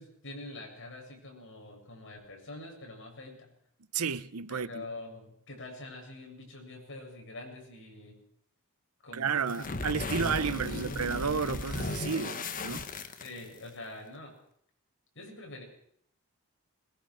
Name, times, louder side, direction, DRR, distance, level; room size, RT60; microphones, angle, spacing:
voice 1, 0.0-3.5 4.5-8.2 9.0-9.7 10.5-11.0 13.2-14.3 15.1-15.6, left 2 dB, 60° left, 7.7 m, -45 dB
voice 2, 3.9-4.8 9.1-12.9, right 6 dB, 90° right, 0.9 m, -32 dB
sound 1, 9.5-13.7, left 3 dB, 40° left, 1.4 m, -36 dB
21.5 x 21.0 x 6.4 m
head